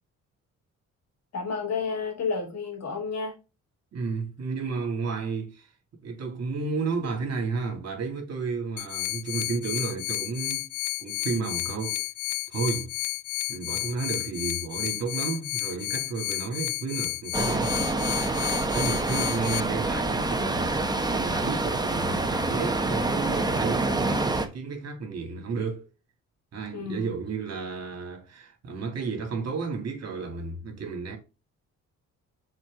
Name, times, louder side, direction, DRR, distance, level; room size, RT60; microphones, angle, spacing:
voice 1, 1.3-3.3 26.7-27.1, left 5 dB, 60° left, 2.6 m, -31 dB
voice 2, 3.9-5.7 6.0-10.7 11.0-12.0 12.5-12.9 13.5-17.7 18.7-25.8 26.5-31.2, right 4 dB, 60° right, 2.6 m, -32 dB
sound 1, 8.8-19.6, left 18 dB, 80° left, 0.5 m, -32 dB
sound 2, 17.3-24.5, right 2 dB, 15° right, 1.1 m, -27 dB
6.4 x 4.5 x 3.7 m
cardioid pair, 90°, 30 cm